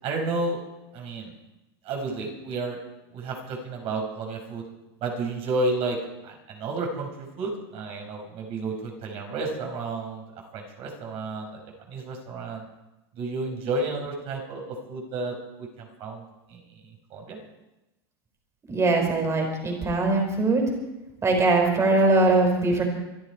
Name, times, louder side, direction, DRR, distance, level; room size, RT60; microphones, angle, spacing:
voice 1, 0.0-0.6 0.9-1.3 1.8-2.8 3.1-4.6 5.0-6.0 6.2-10.2 10.5-11.6 11.9-12.6 13.2-16.2 16.5-16.8 17.1-17.4, right 3 dB, 45° right, 1 dB, 4.9 m, -31 dB
voice 2, 18.7-20.6 21.2-22.8, right 3 dB, 20° right, 2 dB, 5.3 m, -21 dB
25.5 x 11.5 x 4.9 m, 0.98 s
supercardioid pair, 115°, 13 cm